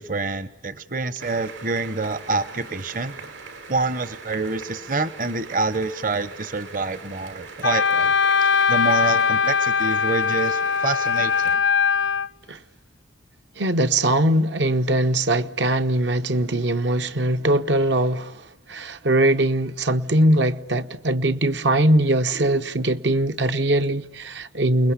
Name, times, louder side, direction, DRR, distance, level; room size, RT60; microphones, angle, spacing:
voice 1, 0.0-3.1 3.7-8.1 8.4-11.6, right 3 dB, 45° right, 1.0 m, -27 dB
sound 1, 1.2-11.6, right 4 dB, 85° right, 4.4 m, -41 dB
Wind instrument woodwind instrument, 7.6-12.3, left 6 dB, 80° left, 1.1 m, -20 dB
voice 2, 13.6-18.3 18.7-24.9, right 1 dB, 70° right, 1.0 m, -21 dB
29.5 x 21.0 x 8.3 m
head